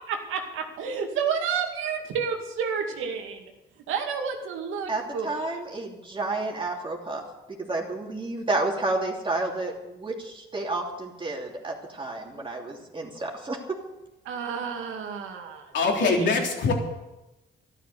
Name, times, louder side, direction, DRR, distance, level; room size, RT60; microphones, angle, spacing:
voice 1, 0.1-3.5 3.9-5.6 14.2-15.7 16.0-16.4, right 6 dB, 90° right, 3 dB, 2.4 m, -30 dB
voice 2, 4.9-7.2 7.5-13.8, right 2 dB, 25° right, -1 dB, 3.0 m, -31 dB
voice 3, 15.7-16.7, left 4 dB, 65° left, 1 dB, 3.5 m, -23 dB
12.5 x 12.5 x 6.9 m, 0.99 s
cardioid pair, 90°, 20 cm